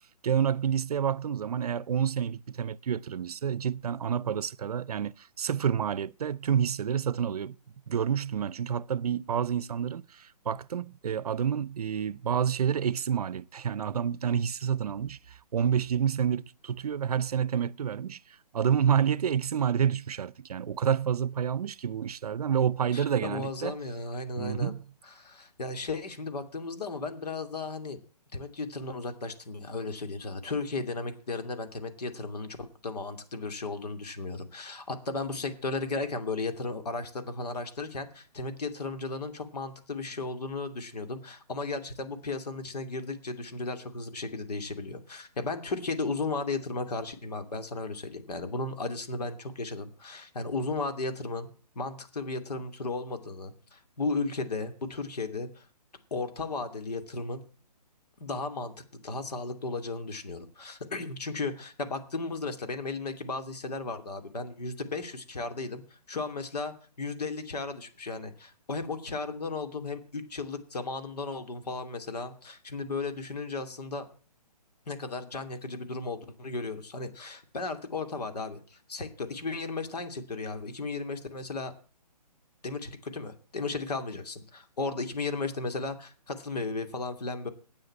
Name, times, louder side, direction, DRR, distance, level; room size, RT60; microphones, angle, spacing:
voice 1, 0.2-7.6 7.9-23.7 24.4-24.8, right 8 dB, 65° right, 0.6 m, -29 dB
voice 2, 22.9-24.7 25.1-28.0 28.3-51.5 51.7-55.7 56.1-57.4 58.2-74.1 74.9-81.7 82.6-87.5, left 3 dB, 70° left, 2.5 m, -35 dB
8.8 x 8.0 x 8.7 m
hypercardioid pair, 165°, 21 cm